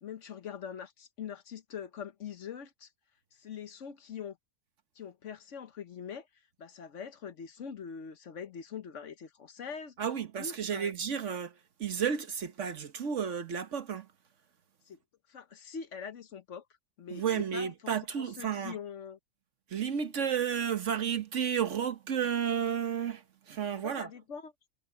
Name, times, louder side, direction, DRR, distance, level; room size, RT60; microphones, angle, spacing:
voice 1, 0.0-2.9 3.3-4.4 4.9-6.3 6.6-10.0 10.4-10.9 14.9-15.0 15.3-16.6 17.0-17.2 17.5-19.2 23.7-24.5, left 7 dB, 60° left, 1.2 m, -43 dB
voice 2, 10.0-14.1 17.1-18.8 19.7-24.1, right 8 dB, 60° right, 1.3 m, -32 dB
omnidirectional pair, 1.5 m